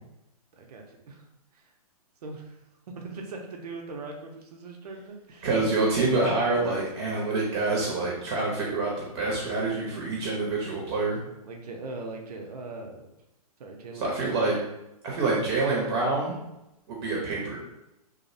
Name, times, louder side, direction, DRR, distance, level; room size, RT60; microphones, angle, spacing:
voice 1, 0.5-1.2 1.5-1.6 2.2-2.6 2.9-5.5 11.4-13.1 13.6-14.3, right 3 dB, 85° right, 2 dB, 0.5 m, -40 dB
voice 2, 5.4-11.2 14.0-14.5 15.0-16.3 16.9-17.6, right 3 dB, 40° right, -3 dB, 0.6 m, -26 dB
2.4 x 2.0 x 2.5 m, 0.90 s
hypercardioid pair, 150°, 20 cm